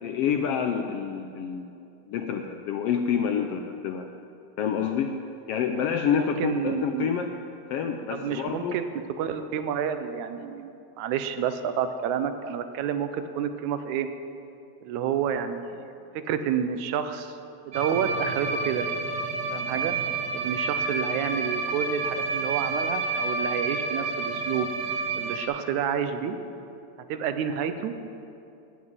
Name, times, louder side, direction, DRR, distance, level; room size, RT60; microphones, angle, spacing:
voice 1, 0.0-1.7 2.1-4.1 4.6-5.2 5.5-7.3 7.7-8.8, left 7 dB, 80° left, 5 dB, 1.4 m, -27 dB
voice 2, 6.1-7.1 8.1-8.9 9.2-14.1 14.8-17.4 17.7-18.9 19.5-20.0 20.3-24.7 25.2-26.4 27.1-27.9, right 8 dB, 90° right, 9 dB, 2.1 m, -29 dB
sound 1, 17.7-25.4, right 3 dB, 50° right, 1.4 m, -29 dB
16.0 x 6.1 x 9.0 m, 2.7 s
omnidirectional pair, 3.3 m